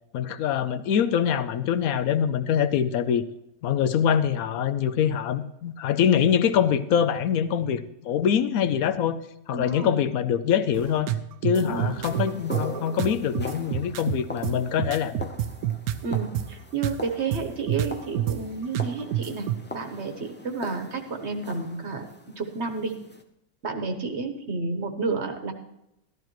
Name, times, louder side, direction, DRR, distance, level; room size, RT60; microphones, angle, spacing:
voice 1, 0.1-3.2 3.6-9.2 9.5-11.1 11.4-15.3, left 8 dB, 75° left, 12 dB, 1.0 m, -24 dB
voice 2, 9.5-10.0 11.5-11.9 16.0-19.5 19.7-22.0 22.4-23.0 23.6-25.5, right 4 dB, 55° right, 5 dB, 1.3 m, -31 dB
sound 1, 10.7-16.5 16.8-16.9 17.3-18.4 18.7-19.6, right 12 dB, 90° right, 1.1 m, -28 dB
sound 2, 12.0-23.2, left 2 dB, 15° left, 0.4 m, -41 dB
13.0 x 12.5 x 3.0 m, 0.83 s
omnidirectional pair, 1.5 m